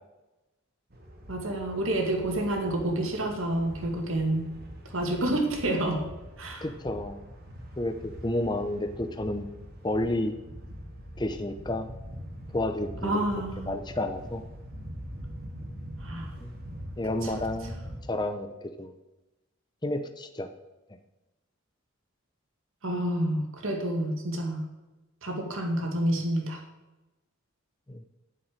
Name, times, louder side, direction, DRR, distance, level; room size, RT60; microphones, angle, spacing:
sound 1, 0.9-18.0, equal, 45° right, 2.3 m, -43 dB
voice 1, 1.3-4.5 4.8-6.0 6.4-6.7 13.0-13.7 16.0-16.3 17.2-17.3 22.8-24.6 25.2-26.6, right 1 dB, 70° right, 2 dB, 2.4 m, -29 dB
voice 2, 6.6-7.2 7.8-9.5 9.8-10.4 11.2-11.9 12.5-13.2 13.6-14.4 16.4-16.5 17.0-17.8 18.1-18.9 19.8-20.5 27.9-28.0, left 1 dB, 20° left, 7 dB, 0.7 m, -30 dB
9.3 x 7.4 x 9.0 m, 1.0 s
head